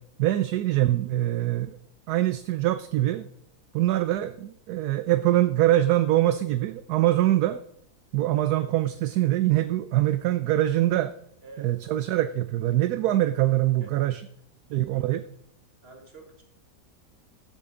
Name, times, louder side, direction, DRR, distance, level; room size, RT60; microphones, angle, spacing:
voice 1, 0.2-1.8 2.1-3.3 3.7-7.6 8.1-11.1 11.6-14.2 14.7-15.2, right 14 dB, 75° right, 12 dB, 1.0 m, -23 dB
voice 2, 11.4-11.8 13.8-14.2 15.8-16.4, right 3 dB, 35° right, 1 dB, 2.3 m, -47 dB
14.5 x 7.8 x 3.8 m, 0.72 s
omnidirectional pair, 1.8 m